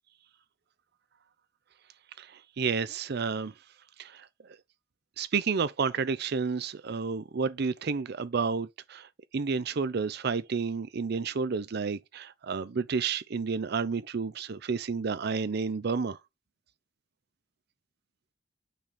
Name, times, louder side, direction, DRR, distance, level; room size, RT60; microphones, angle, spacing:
voice 1, 2.2-3.5 4.0-4.3 5.2-9.1 9.3-16.2, right 5 dB, 55° right, 0.5 m, -30 dB
8.9 x 4.1 x 5.0 m
head